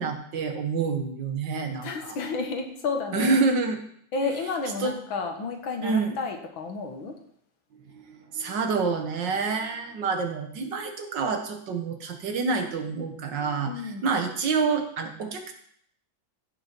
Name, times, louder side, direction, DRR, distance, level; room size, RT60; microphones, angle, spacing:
voice 1, 0.0-2.2 3.1-3.8 4.8-4.9 5.8-6.2 7.7-13.7 14.0-15.5, right 4 dB, 65° right, 5 dB, 1.9 m, -27 dB
voice 2, 1.8-3.4 4.1-7.1 13.7-14.1, left 4 dB, 85° left, 4 dB, 2.2 m, -31 dB
15.5 x 6.2 x 4.5 m, 0.66 s
omnidirectional pair, 2.1 m